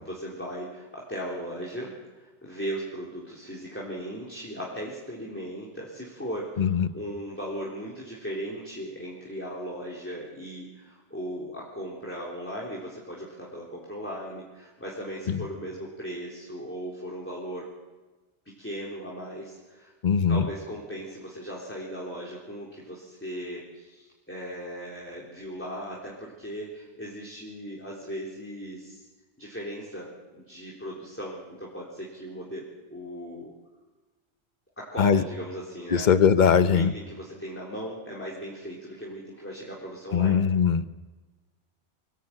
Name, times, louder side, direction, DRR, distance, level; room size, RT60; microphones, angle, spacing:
voice 1, 0.0-17.7 18.6-19.9 20.3-29.1 29.4-30.1 30.3-32.6 32.9-33.5 34.8-36.1 36.7-40.4, equal, 10° left, -5 dB, 3.9 m, -37 dB
voice 2, 6.6-6.9 15.3-15.4 20.0-20.5 35.0-35.2 35.9-36.9 40.1-40.8, left 7 dB, 45° left, 11 dB, 1.0 m, -21 dB
24.5 x 15.5 x 8.9 m, 1.2 s
omnidirectional pair, 1.1 m